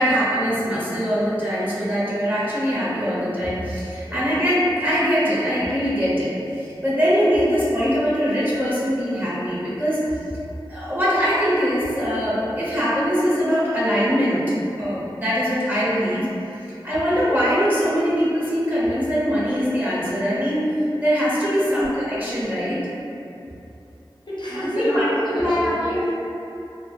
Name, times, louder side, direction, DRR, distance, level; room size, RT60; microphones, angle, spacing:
voice 1, 0.0-10.0 10.7-14.4 14.8-16.3 16.8-20.6 21.0-22.8 24.6-26.0, equal, 20° right, -9 dB, 0.8 m, -22 dB
voice 2, 24.3-26.1, equal, 65° left, -9 dB, 0.8 m, -29 dB
2.2 x 2.0 x 3.7 m, 2.8 s
wide cardioid pair, 50°, 9 cm